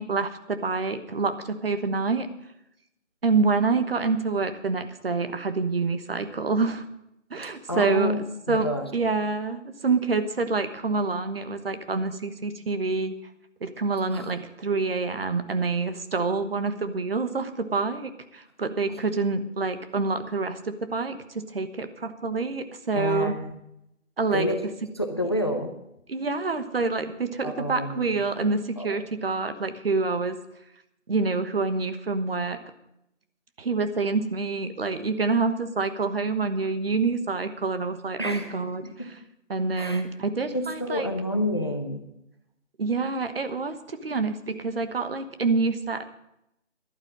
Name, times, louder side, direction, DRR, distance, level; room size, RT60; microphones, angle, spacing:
voice 1, 0.0-2.3 3.2-6.8 7.3-8.1 8.5-13.1 13.6-23.3 24.2-24.5 26.1-30.4 31.1-32.6 33.6-39.1 39.5-41.1 42.8-46.0, right 4 dB, 50° right, 10 dB, 1.2 m, -27 dB
voice 2, 7.7-8.2 8.5-8.9 14.1-14.3 18.9-19.0 22.9-23.5 24.3-24.6 24.9-25.7 27.4-28.1 28.4-28.5 28.8-29.0 38.2-38.7 39.0-39.1 39.7-40.0 40.5-42.0, left 1 dB, 20° left, 6 dB, 0.6 m, -29 dB
11.5 x 9.4 x 7.5 m, 0.81 s
figure-of-eight pair, 160°, 38 cm